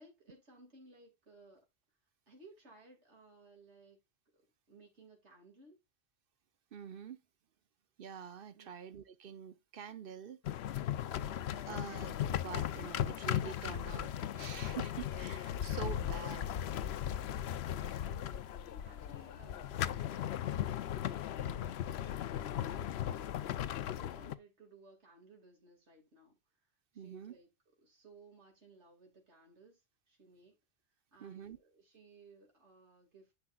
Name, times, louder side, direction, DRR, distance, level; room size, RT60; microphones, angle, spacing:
voice 1, 0.0-2.0 2.3-4.0 4.3-4.4 4.7-5.8 8.5-8.7 15.8-16.0 17.6-20.5 20.8-21.3 22.4-23.3 23.9-27.5 27.8-30.6 30.9-33.4, right 3 dB, 85° right, 2.4 m, -61 dB
voice 2, 6.7-7.2 8.0-10.4 11.1-11.2 11.7-16.5 17.8-18.0 26.9-27.3 31.2-31.6, right 8 dB, 60° right, 0.8 m, -46 dB
sound 1, 10.4-24.3, left 11 dB, 70° left, 0.8 m, -37 dB
10.5 x 6.8 x 2.3 m
omnidirectional pair, 1.1 m